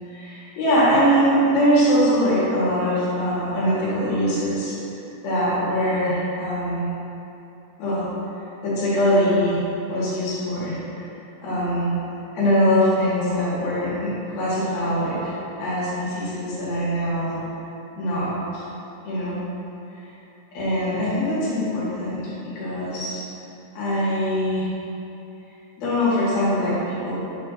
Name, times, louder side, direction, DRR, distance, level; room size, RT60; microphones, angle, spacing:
voice 1, 0.1-4.7 5.2-6.9 7.8-8.1 8.6-9.6 9.9-11.1 11.4-12.0 12.3-17.4 18.0-18.6 19.1-19.4 20.5-22.3 22.6-23.2 23.7-24.7 25.8-27.1, equal, 80° left, -10 dB, 3.7 m, -22 dB
8.9 x 6.6 x 2.6 m, 2.9 s
omnidirectional pair, 4.2 m